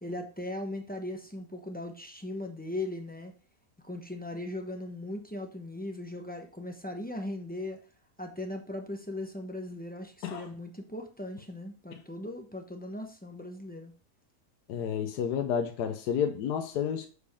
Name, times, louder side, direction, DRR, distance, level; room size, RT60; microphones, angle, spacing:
voice 1, 0.0-3.3 3.8-7.8 8.2-13.9, left 1 dB, 10° left, 0.4 m, -38 dB
voice 2, 14.7-17.1, left 8 dB, 85° left, 1.3 m, -30 dB
6.8 x 4.9 x 3.4 m
omnidirectional pair, 1.7 m